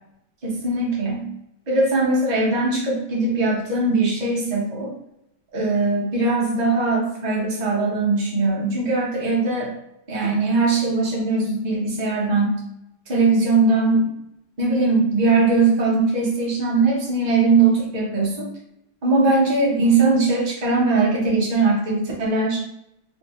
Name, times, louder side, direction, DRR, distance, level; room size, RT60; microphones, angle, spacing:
voice 1, 0.4-1.3 1.7-4.9 5.5-9.7 10.1-12.6 13.1-14.1 14.6-18.5 19.0-22.6, right 3 dB, 85° right, -4 dB, 0.3 m, -20 dB
3.2 x 2.7 x 2.9 m, 0.81 s
omnidirectional pair, 2.1 m